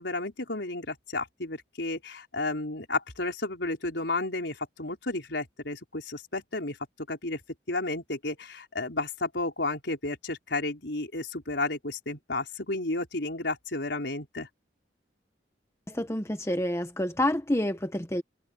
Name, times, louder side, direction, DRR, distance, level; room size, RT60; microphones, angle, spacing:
voice 1, 0.0-6.8 7.1-7.4 7.7-14.5, left 2 dB, 75° left, 4.5 m, -32 dB
voice 2, 15.9-18.2, left 1 dB, 15° left, 1.3 m, -28 dB
head